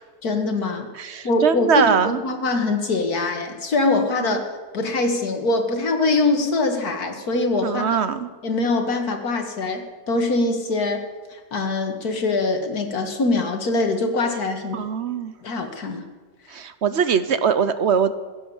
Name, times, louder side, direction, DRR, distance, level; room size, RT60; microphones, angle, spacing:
voice 1, 0.2-0.9 1.2-4.4 4.7-7.8 8.4-11.0 11.3-14.8 15.4-16.0, left 3 dB, 90° left, 5 dB, 2.3 m, -23 dB
voice 2, 0.9-2.2 4.2-4.4 7.6-8.3 14.7-15.3 16.5-18.1, right 7 dB, 55° right, 12 dB, 1.0 m, -21 dB
16.0 x 12.0 x 7.2 m, 1.4 s
omnidirectional pair, 1.6 m